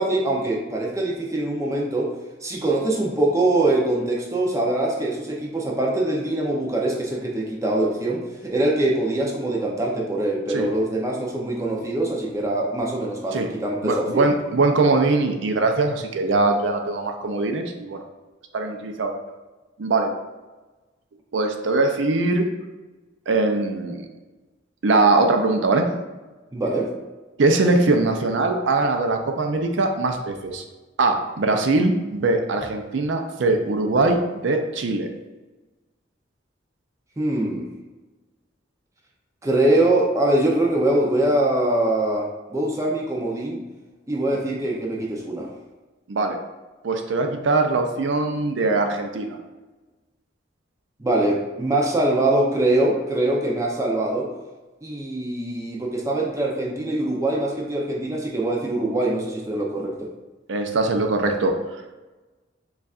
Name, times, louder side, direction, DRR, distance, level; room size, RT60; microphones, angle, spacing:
voice 1, 0.0-2.1 2.4-14.3 26.5-26.9 37.2-37.7 39.4-43.6 44.1-45.5 51.0-54.3 54.8-60.1, right 1 dB, 15° right, -1 dB, 0.5 m, -23 dB
voice 2, 13.8-18.0 18.5-19.1 19.8-20.1 21.3-22.5 23.3-24.1 24.8-25.9 27.4-30.6 31.0-35.1 44.5-44.6 46.1-46.4 46.8-49.4 60.5-61.5, right 3 dB, 75° right, 4 dB, 0.5 m, -21 dB
6.6 x 2.4 x 2.4 m, 1.2 s
head